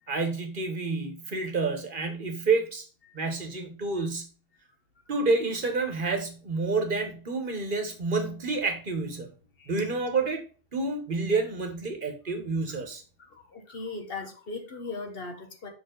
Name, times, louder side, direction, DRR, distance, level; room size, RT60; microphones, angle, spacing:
voice 1, 0.1-2.8 3.1-4.3 5.1-9.3 9.7-10.4 10.7-13.0, right 3 dB, 50° right, 5 dB, 1.3 m, -29 dB
voice 2, 13.2-15.7, left 3 dB, 60° left, 4 dB, 1.3 m, -38 dB
6.0 x 4.6 x 3.8 m, 0.37 s
omnidirectional pair, 1.1 m